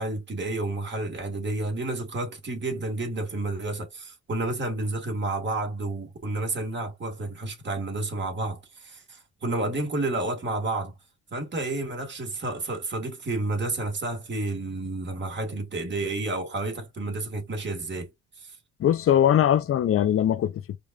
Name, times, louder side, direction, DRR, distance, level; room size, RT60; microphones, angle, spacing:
voice 1, 0.0-10.9 11.3-18.1 18.4-18.6, right 2 dB, 35° right, 1.7 m, -30 dB
voice 2, 18.8-20.8, left 10 dB, 50° left, 0.5 m, -21 dB
5.0 x 2.4 x 2.4 m
cardioid pair, 90°, 30 cm